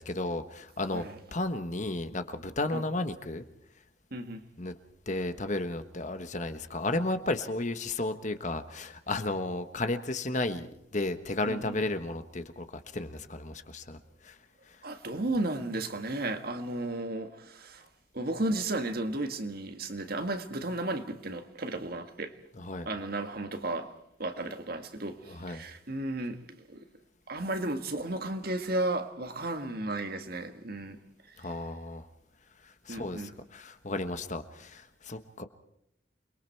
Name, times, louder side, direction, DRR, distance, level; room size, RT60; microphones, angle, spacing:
voice 1, 0.0-1.0 1.3-3.4 4.6-4.7 5.1-10.7 10.9-14.0 14.2-14.4 14.7-14.8 22.6-22.9 25.3-25.6 31.4-32.1 32.6-35.4, left 2 dB, 40° left, 1.3 m, -33 dB
voice 2, 4.1-4.4 11.4-11.8 14.8-17.9 18.1-22.3 22.8-23.9 24.2-26.8 27.3-31.0 31.3-31.5 32.9-33.3, right 2 dB, 50° right, 1.8 m, -34 dB
28.5 x 22.0 x 4.6 m
head